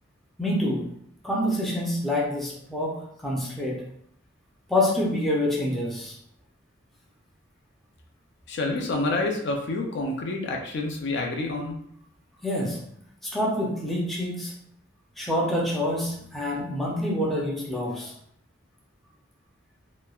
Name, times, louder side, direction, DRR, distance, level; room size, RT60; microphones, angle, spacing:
voice 1, 0.4-0.9 1.2-3.8 4.7-6.2 12.4-12.8 13.2-14.5 15.2-18.1, left 1 dB, ahead, -5 dB, 0.5 m, -27 dB
voice 2, 8.5-11.8, left 2 dB, 60° left, 1 dB, 0.4 m, -28 dB
3.0 x 2.2 x 2.3 m, 0.69 s
head